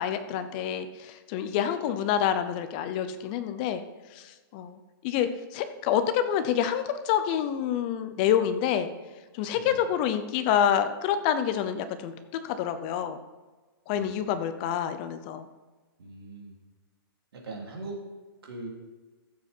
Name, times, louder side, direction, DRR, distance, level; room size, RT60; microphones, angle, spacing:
voice 1, 0.0-3.8 4.1-8.9 9.3-12.1 12.4-13.2 13.9-15.4, left 9 dB, 20° left, 10 dB, 0.6 m, -27 dB
voice 2, 16.0-16.5 17.3-18.0 18.4-18.7, right 2 dB, 80° right, 0 dB, 3.3 m, -40 dB
14.5 x 7.3 x 4.5 m, 1.3 s
hypercardioid pair, 175°, 13 cm